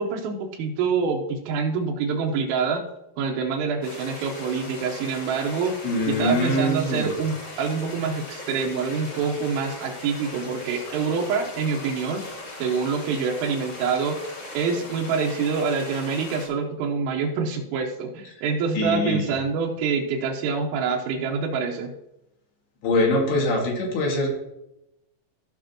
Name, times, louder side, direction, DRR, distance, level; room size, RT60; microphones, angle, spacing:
voice 1, 0.0-2.8 3.2-5.8 6.1-12.3 12.6-14.2 14.5-21.9, right 5 dB, 80° right, -1 dB, 3.6 m, -26 dB
sound 1, 3.8-16.5, left 2 dB, 35° left, 3.0 m, -39 dB
voice 2, 5.8-7.1 18.8-19.3 22.8-24.3, left 1 dB, 55° left, -1 dB, 3.7 m, -23 dB
16.5 x 6.2 x 3.0 m, 0.86 s
omnidirectional pair, 6.0 m